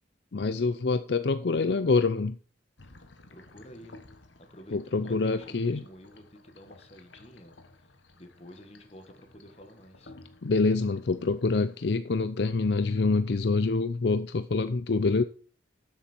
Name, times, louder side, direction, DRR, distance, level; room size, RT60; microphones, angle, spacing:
voice 1, 0.3-2.4 4.7-5.8 10.4-15.2, left 3 dB, 65° left, 0.5 m, -26 dB
sound 1, 2.8-12.0, left 2 dB, 85° left, 1.5 m, -55 dB
voice 2, 3.3-4.0 4.5-10.1, equal, 35° left, 1.6 m, -50 dB
12.5 x 7.2 x 4.4 m
head